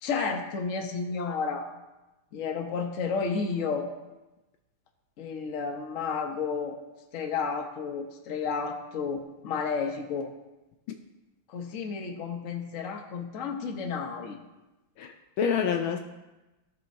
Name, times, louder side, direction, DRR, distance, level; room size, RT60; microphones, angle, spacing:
voice 1, 0.0-1.7 2.3-3.9 5.2-6.8 7.1-10.3 11.5-14.4, left 5 dB, 55° left, 3 dB, 1.0 m, -32 dB
voice 2, 15.0-16.0, left 7 dB, 75° left, 5 dB, 1.3 m, -28 dB
16.0 x 5.5 x 2.7 m, 1.0 s
omnidirectional pair, 2.4 m